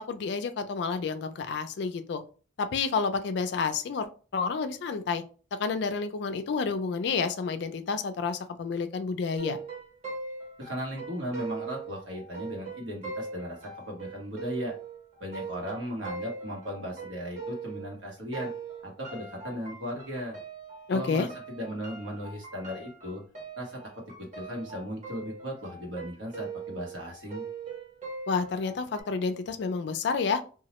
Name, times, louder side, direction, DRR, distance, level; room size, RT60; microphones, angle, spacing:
voice 1, 0.1-2.2 2.6-5.2 5.6-9.6 20.9-21.3 28.3-30.4, left 5 dB, 60° left, 9 dB, 0.3 m, -30 dB
sound 1, 9.4-18.0 18.3-29.0, right 4 dB, 40° right, 0.8 m, -41 dB
voice 2, 10.6-14.7 15.2-18.5 18.8-20.4 20.9-23.2 23.6-23.8 24.2-27.5, equal, 85° right, -1 dB, 1.0 m, -37 dB
2.2 x 2.0 x 2.9 m, 0.37 s
head